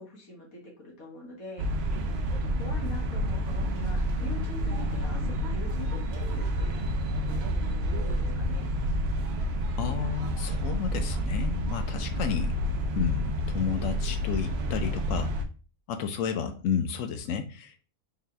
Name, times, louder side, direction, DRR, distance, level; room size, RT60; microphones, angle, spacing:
voice 1, 0.0-1.7 2.4-6.8 7.2-7.4 8.0-8.7, left 2 dB, 90° left, -2 dB, 2.0 m, -43 dB
sound 1, 1.6-15.4, equal, 60° right, 0.7 m, -29 dB
voice 2, 9.8-12.6 13.0-15.3 15.9-17.8, left 7 dB, 70° left, 7 dB, 0.9 m, -31 dB
3.9 x 2.7 x 3.2 m, 0.35 s
omnidirectional pair, 1.5 m